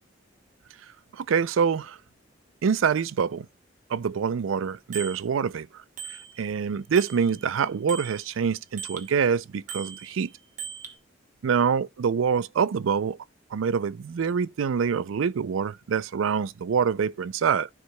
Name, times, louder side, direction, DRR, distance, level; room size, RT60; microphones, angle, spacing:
voice 1, 1.1-2.0 2.6-3.5 3.9-5.8 6.1-10.3 11.4-13.2 13.5-17.7, right 6 dB, 80° right, 0.4 m, -25 dB
Bicycle bell, 4.9-5.2 6.0-6.6 7.0-9.1 9.7-11.0, right 7 dB, 40° right, 0.9 m, -40 dB
13.0 x 4.7 x 2.2 m
head